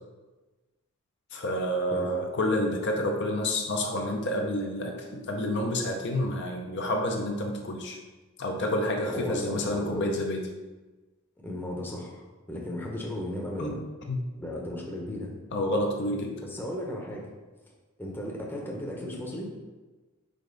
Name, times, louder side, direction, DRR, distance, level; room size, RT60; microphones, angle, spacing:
voice 1, 1.3-8.0 8.4-10.5 13.6-13.7 14.1-14.2 15.5-16.4, left 1 dB, 50° left, 2 dB, 0.7 m, -29 dB
voice 2, 9.0-10.1 11.4-13.8 14.4-15.3 16.4-17.3 18.0-19.5, left 1 dB, 10° left, -2 dB, 0.8 m, -35 dB
5.1 x 5.0 x 3.9 m, 1.2 s
head